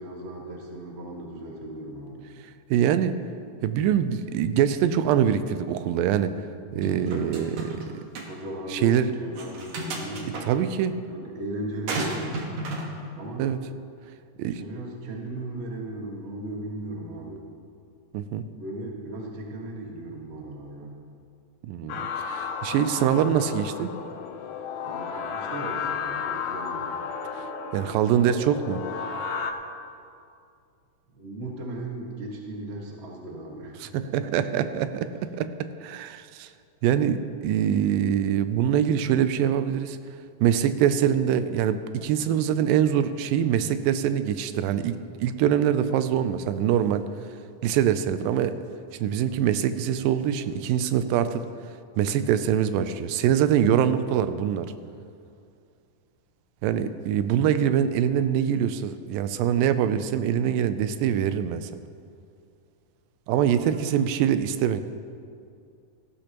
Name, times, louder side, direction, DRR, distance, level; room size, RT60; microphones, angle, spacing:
voice 1, 0.0-2.2 6.7-7.4 8.3-10.5 11.1-12.4 13.1-13.5 14.5-17.4 18.5-20.9 24.8-26.9 31.1-33.9 34.2-34.6 63.5-63.8, right 1 dB, 40° right, -1 dB, 0.8 m, -37 dB
voice 2, 2.7-3.1 3.6-6.3 6.7-7.8 8.7-9.1 10.5-10.9 13.4-13.6 14.4-14.6 18.1-18.4 21.7-23.9 27.3-27.5 27.7-28.8 33.8-35.1 35.4-35.5 35.8-36.5 36.8-40.0 40.4-47.0 47.6-48.6 49.0-51.5 52.0-54.7 56.6-61.7 63.3-64.8, right 9 dB, 90° right, 11 dB, 2.3 m, -24 dB
sound 1, 6.8-7.9 8.2-8.3 9.4-10.5 11.9-12.9, right 2 dB, 65° right, 2.4 m, -32 dB
sound 2, 21.9-29.5, left 6 dB, 75° left, 1.8 m, -33 dB
17.5 x 14.0 x 3.0 m, 2.4 s
omnidirectional pair, 3.9 m